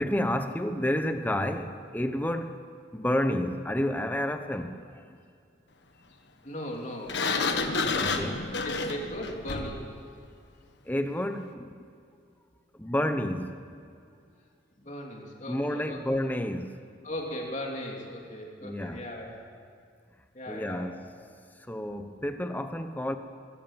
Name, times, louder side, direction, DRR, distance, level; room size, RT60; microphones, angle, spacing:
voice 1, 0.0-2.6 2.9-5.2 7.9-8.5 10.8-11.8 12.7-13.6 14.8-14.9 15.5-16.8 18.6-19.0 20.5-21.1 21.5-23.2, left 1 dB, 10° left, 8 dB, 1.0 m, -30 dB
voice 2, 6.4-9.8 14.8-16.0 17.0-19.4 20.3-21.0, left 1 dB, 40° left, 0 dB, 3.3 m, -38 dB
Sliding door, 7.1-9.9, left 4 dB, 65° left, 1.5 m, -29 dB
22.0 x 16.5 x 7.4 m, 2.3 s
head